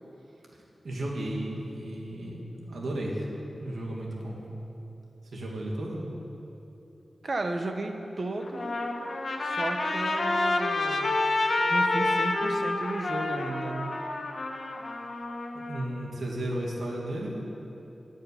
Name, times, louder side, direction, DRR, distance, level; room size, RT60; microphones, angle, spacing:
voice 1, 0.8-3.3 3.6-4.4 5.3-6.1 15.5-17.3, right 1 dB, 80° right, -2 dB, 2.4 m, -34 dB
voice 2, 7.2-8.8 9.4-11.2 11.7-13.9, right 2 dB, 45° right, 5 dB, 1.0 m, -34 dB
Trumpet, 8.4-15.8, left 2 dB, 50° left, 1.4 m, -28 dB
13.5 x 6.7 x 9.9 m, 2.9 s
wide cardioid pair, 135°, 0 cm